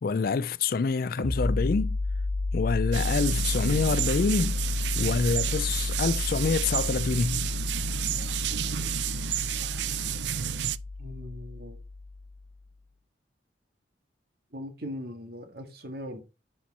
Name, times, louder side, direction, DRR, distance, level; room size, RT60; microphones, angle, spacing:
voice 1, 0.0-2.0 2.5-4.6 5.0-7.5, left 4 dB, 55° left, 0.4 m, -27 dB
sound 1, 1.2-12.5, left 2 dB, 90° left, 1.1 m, -31 dB
sound 2, 2.9-10.8, right 11 dB, 80° right, 0.4 m, -31 dB
voice 2, 11.0-11.8 14.5-16.2, left 1 dB, 60° right, 1.8 m, -39 dB
10.5 x 4.4 x 4.3 m
head